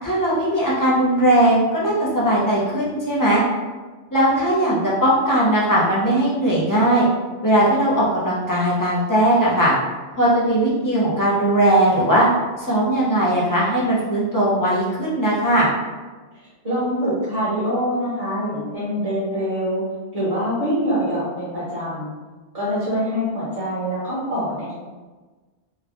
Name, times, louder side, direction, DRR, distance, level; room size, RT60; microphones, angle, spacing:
voice 1, 0.0-3.4 4.1-7.1 7.4-9.7 10.2-12.3 12.6-15.7, right 1 dB, 25° left, -6 dB, 0.4 m, -19 dB
voice 2, 16.6-19.8 20.1-22.1 22.5-24.7, equal, 35° right, -11 dB, 0.9 m, -24 dB
3.0 x 2.2 x 2.5 m, 1.3 s
omnidirectional pair, 1.2 m